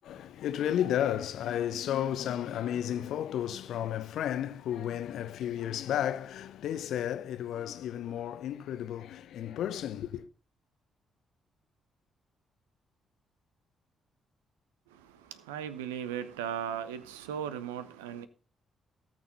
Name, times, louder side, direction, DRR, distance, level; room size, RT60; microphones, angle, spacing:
voice 1, 0.0-10.2, left 10 dB, 60° left, 0.7 m, -33 dB
voice 2, 15.5-18.3, right 9 dB, 75° right, 0.7 m, -36 dB
17.5 x 6.4 x 4.0 m
figure-of-eight pair, 40°, 0 cm